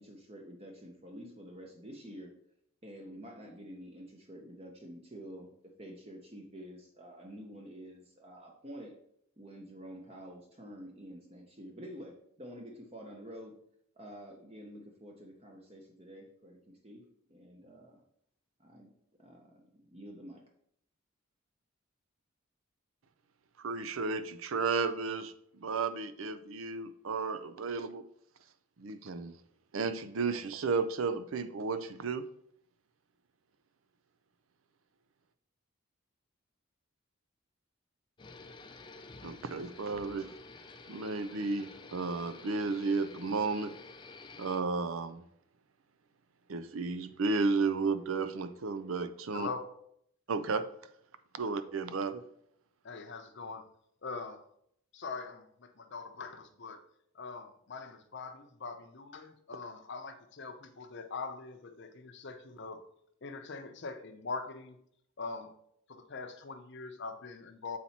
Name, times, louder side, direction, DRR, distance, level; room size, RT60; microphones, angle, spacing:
voice 1, 0.0-2.3 2.8-5.5 5.8-8.9 9.4-13.5 14.0-17.0 17.3-18.0 18.6-18.9 19.2-20.4, equal, 30° right, 1 dB, 0.8 m, -48 dB
voice 2, 23.6-28.0 28.8-29.3 29.7-32.3 39.2-40.3 40.9-43.7 44.4-45.2 46.5-49.5 50.3-50.6 51.3-52.2, right 4 dB, 70° right, 11 dB, 0.5 m, -33 dB
sound 1, 38.2-44.6, left 3 dB, 20° left, 0.4 m, -50 dB
voice 3, 49.3-49.7 51.4-51.5 52.8-53.6 54.0-54.5 54.9-56.8 57.1-62.8 63.2-64.8 65.2-65.5 65.9-67.8, left 4 dB, 55° left, 6 dB, 0.7 m, -42 dB
7.5 x 4.2 x 4.2 m, 0.70 s
head